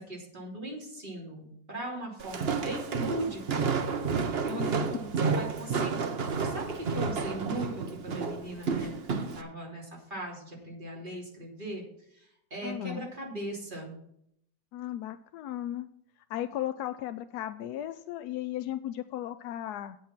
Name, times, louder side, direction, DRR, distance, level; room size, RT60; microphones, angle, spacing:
voice 1, 0.0-3.7 4.4-11.8 12.1-14.0, right 1 dB, 25° right, -2 dB, 3.3 m, -39 dB
Walk footsteps, 2.2-9.4, right 5 dB, 45° right, 0.8 m, -31 dB
voice 2, 12.6-13.1 14.7-15.9 16.3-20.0, left 12 dB, 70° left, 11 dB, 1.0 m, -36 dB
8.7 x 8.5 x 6.0 m, 0.73 s
omnidirectional pair, 2.0 m